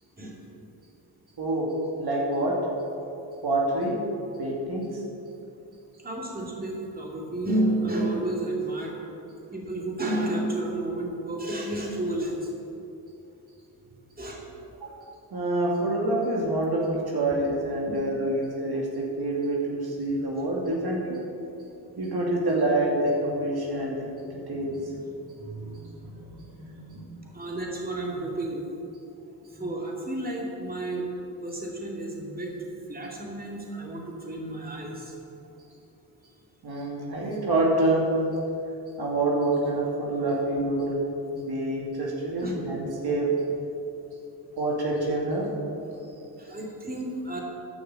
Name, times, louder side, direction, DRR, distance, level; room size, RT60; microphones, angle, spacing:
voice 1, 1.4-1.7 2.0-2.6 3.4-4.0 4.4-5.0 14.8-15.0 15.3-21.2 22.0-24.9 25.2-27.1 29.5-29.7 36.6-38.0 39.0-41.0 41.3-43.3 44.6-45.5, right 2 dB, 55° right, -3 dB, 2.4 m, -27 dB
voice 2, 6.0-8.9 9.5-12.5 14.2-14.4 17.9-18.0 27.3-28.6 29.6-31.0 31.4-32.5 32.9-35.1 42.4-42.5 46.4-47.4, right 1 dB, 20° right, -2 dB, 2.7 m, -31 dB
11.5 x 5.8 x 7.9 m, 2.8 s
supercardioid pair, 55°, 44 cm